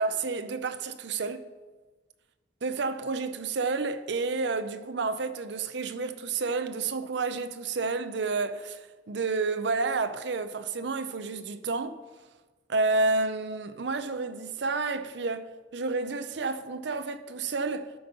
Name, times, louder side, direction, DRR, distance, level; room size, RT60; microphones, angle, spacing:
voice 1, 0.0-1.4 2.6-12.0 12.7-17.9, right 3 dB, 65° right, 0.6 m, -30 dB
12.5 x 5.3 x 5.3 m
head